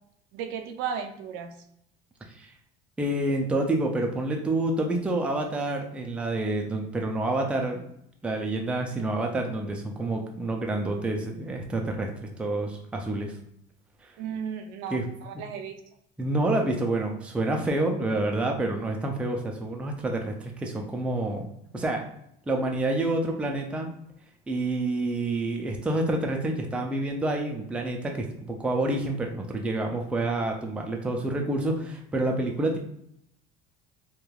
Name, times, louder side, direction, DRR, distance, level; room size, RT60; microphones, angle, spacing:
voice 1, 0.3-1.5 14.2-15.8, right 7 dB, 75° right, 6 dB, 0.5 m, -34 dB
voice 2, 3.0-7.9 8.2-12.1 12.4-13.3 14.0-14.1 14.9-15.0 16.2-21.5 21.7-22.0 22.5-23.9 24.5-32.8, right 2 dB, 5° right, 2 dB, 0.3 m, -28 dB
3.1 x 2.2 x 2.3 m, 0.74 s
cardioid pair, 130°, 20 cm